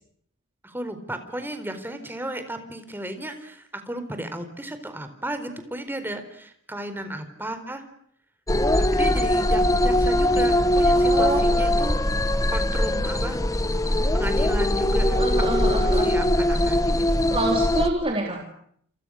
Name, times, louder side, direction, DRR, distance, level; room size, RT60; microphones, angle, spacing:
voice 1, 0.6-7.8 8.9-13.4 14.1-15.2 15.5-17.2, right 1 dB, 10° right, 8 dB, 4.3 m, -34 dB
sound 1, 8.5-17.9, left 1 dB, 15° left, 1.3 m, -21 dB
voice 2, 11.0-11.5 15.1-16.1 17.3-18.4, right 1 dB, 25° right, 1 dB, 3.8 m, -27 dB
29.0 x 28.5 x 6.5 m, 0.67 s
head